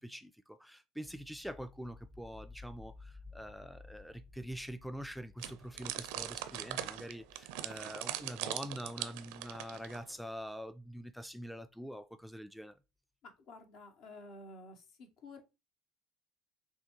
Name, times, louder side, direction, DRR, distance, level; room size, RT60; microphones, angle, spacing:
voice 1, 0.0-12.7, equal, ahead, 0.3 m, -45 dB
sound 1, 1.0-11.7, left 3 dB, 25° left, 1.1 m, -57 dB
sound 2, 5.4-10.1, right 13 dB, 70° right, 0.4 m, -41 dB
voice 2, 13.2-15.4, left 2 dB, 60° left, 0.9 m, -52 dB
6.0 x 2.3 x 3.0 m
hypercardioid pair, 70°, 0 cm